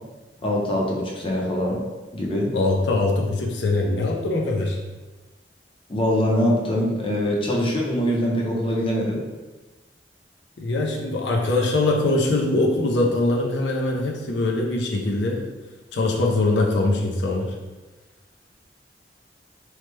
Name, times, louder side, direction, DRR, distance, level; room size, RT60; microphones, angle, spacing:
voice 1, 0.4-1.8 2.1-2.5 5.9-9.2, equal, 30° left, -3 dB, 0.6 m, -23 dB
voice 2, 2.5-4.8 10.6-15.5 15.9-17.5, left 2 dB, 90° left, 0 dB, 0.5 m, -22 dB
3.1 x 2.1 x 3.2 m, 1.2 s
head